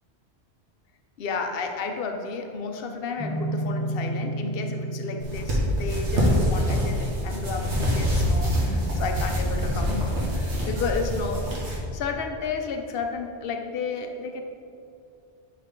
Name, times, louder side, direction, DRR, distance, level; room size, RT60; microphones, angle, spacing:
voice 1, 1.2-14.4, left 4 dB, 60° left, 4 dB, 0.9 m, -32 dB
sound 1, 3.2-10.4, right 1 dB, ahead, 1.1 m, -34 dB
sound 2, 5.2-11.8, equal, 85° right, 1.8 m, -25 dB
10.5 x 4.7 x 3.7 m, 2.7 s
omnidirectional pair, 1.1 m